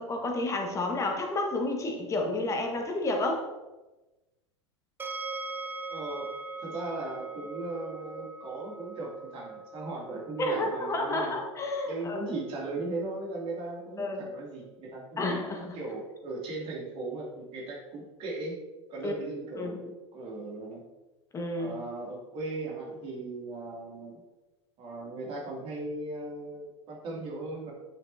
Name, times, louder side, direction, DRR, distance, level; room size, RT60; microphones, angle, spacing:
voice 1, 0.0-3.4 10.4-12.2 14.0-14.2 15.2-15.8 19.0-19.1 19.6-19.7 21.3-21.7, left 2 dB, 20° left, 2 dB, 1.6 m, -30 dB
sound 1, 5.0-18.0, right 3 dB, 15° right, 0.7 m, -43 dB
voice 2, 5.9-6.3 6.6-11.4 11.8-15.2 15.7-18.6 18.9-20.8 21.5-24.2 24.8-27.7, right 2 dB, 40° right, -2 dB, 2.8 m, -38 dB
8.7 x 7.3 x 2.8 m, 1.1 s
figure-of-eight pair, 85°, 15 cm